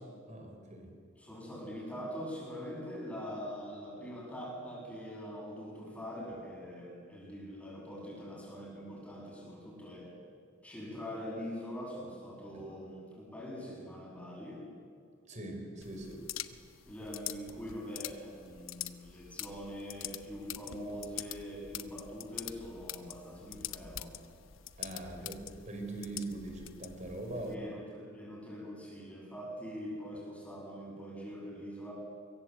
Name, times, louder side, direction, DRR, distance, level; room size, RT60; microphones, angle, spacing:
voice 1, 0.3-1.0 12.5-12.6 15.3-16.3 24.8-25.4 25.6-27.6, right 2 dB, 35° right, 3 dB, 4.9 m, -42 dB
voice 2, 1.2-10.1 10.6-14.6 16.9-24.1 25.2-25.3 27.4-31.9, equal, 5° left, -3 dB, 8.0 m, -43 dB
sound 1, 15.8-27.5, left 12 dB, 85° left, 0.9 m, -45 dB
25.0 x 23.0 x 7.9 m, 2.2 s
head